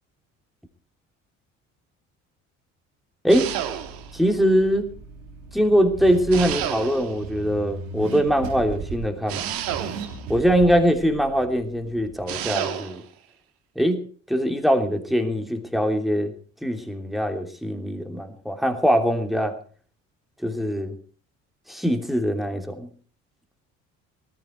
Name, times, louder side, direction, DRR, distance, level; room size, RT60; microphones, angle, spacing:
sound 1, 3.3-4.2 6.3-7.3 9.3-10.3 12.3-13.1, right 10 dB, 65° right, 2.3 m, -30 dB
Car / Accelerating revving vroom, 3.3-12.5, right 4 dB, 80° right, 3.2 m, -38 dB
voice 1, 4.1-4.9 5.5-9.4 10.3-13.0 13.7-14.0 14.3-16.3 16.6-19.6 20.4-20.9 21.7-22.9, equal, ahead, 5 dB, 3.2 m, -22 dB
19.0 x 14.5 x 4.6 m, 0.42 s
hypercardioid pair, 60°, 37 cm